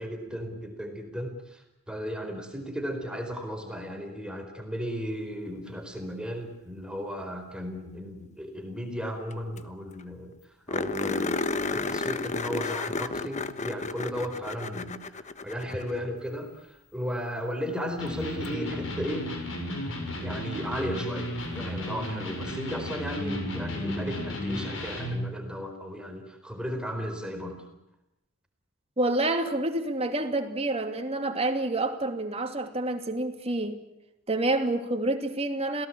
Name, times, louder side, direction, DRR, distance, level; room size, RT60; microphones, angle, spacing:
voice 1, 0.0-10.3 10.7-11.4 11.7-19.3 20.2-27.7, equal, 5° right, 4 dB, 4.2 m, -35 dB
sound 1, 9.3-9.4 9.6-9.7 10.0-10.1 10.7-16.1 18.4-18.5 21.4-21.5, left 3 dB, 35° left, 1.2 m, -32 dB
Electric guitar, 18.0-25.3, left 1 dB, 65° left, 7.1 m, -33 dB
voice 2, 29.0-33.8 34.3-35.9, right 2 dB, 30° right, 5 dB, 2.7 m, -28 dB
27.5 x 18.0 x 8.7 m, 0.88 s
head